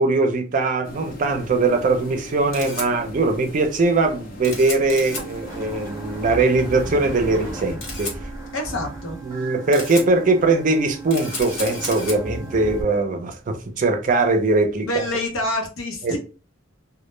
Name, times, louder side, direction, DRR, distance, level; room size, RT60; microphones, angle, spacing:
voice 1, 0.0-8.2 9.2-14.9 16.0-16.2, right 3 dB, 40° right, 0.4 m, -21 dB
sound 1, 0.8-7.8, left 1 dB, 45° left, 0.5 m, -39 dB
Camera, 2.2-15.5, left 2 dB, 70° left, 1.1 m, -37 dB
sound 2, 5.1-12.8, right 2 dB, 15° right, 0.7 m, -36 dB
voice 2, 8.5-9.2 14.8-16.2, left 1 dB, 85° left, 0.7 m, -26 dB
2.1 x 2.0 x 3.0 m
head